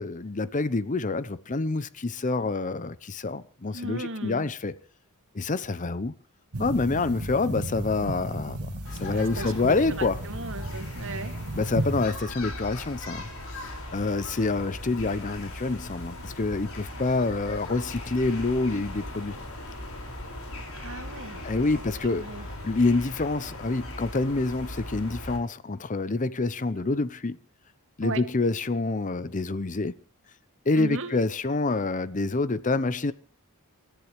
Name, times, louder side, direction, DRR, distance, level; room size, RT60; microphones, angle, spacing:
voice 1, 0.0-4.8 5.3-6.1 6.6-8.7 9.0-10.2 11.5-13.3 13.5-19.4 21.4-22.3 22.6-27.4 28.0-29.9 30.7-33.1, left 3 dB, 35° left, 0.7 m, -27 dB
voice 2, 3.7-4.5 9.1-11.3 20.8-21.8 22.1-22.5 26.7-26.9 28.0-28.2 30.7-31.1, right 2 dB, 60° right, 2.1 m, -37 dB
sound 1, 6.5-12.1, right 1 dB, 90° right, 2.0 m, -34 dB
sound 2, 8.8-25.4, left 1 dB, 70° left, 5.4 m, -39 dB
28.5 x 13.5 x 3.2 m
head